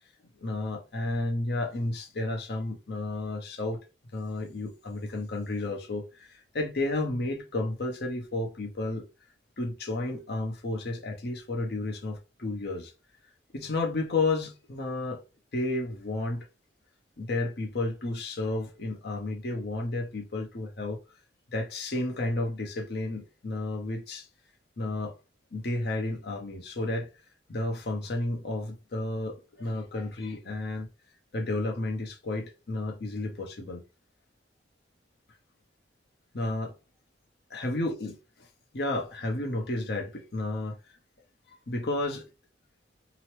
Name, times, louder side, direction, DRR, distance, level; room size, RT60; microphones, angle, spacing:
voice 1, 0.4-3.8 4.1-9.0 9.6-12.9 13.5-15.2 15.5-16.5 17.2-21.0 21.5-24.3 24.8-25.1 25.5-27.1 27.5-30.9 31.3-33.8 36.3-36.7 37.5-38.2 38.7-40.8 41.7-42.2, left 2 dB, 60° left, 0.8 m, -32 dB
2.9 x 2.0 x 3.1 m
head